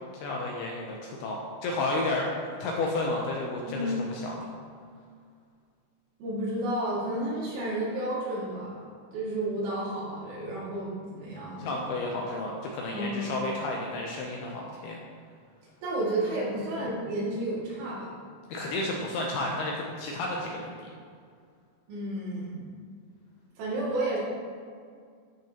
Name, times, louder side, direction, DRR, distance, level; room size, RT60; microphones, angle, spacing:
voice 1, 0.2-2.3 2.6-4.5 11.6-15.0 18.5-20.9, left 2 dB, 80° left, -1 dB, 2.3 m, -32 dB
voice 2, 3.7-4.0 6.2-8.8 9.1-11.8 12.9-13.3 15.8-18.1 21.9-22.6 23.6-24.2, right 1 dB, 90° right, -7 dB, 4.6 m, -31 dB
12.5 x 6.2 x 2.9 m, 2.1 s
omnidirectional pair, 5.2 m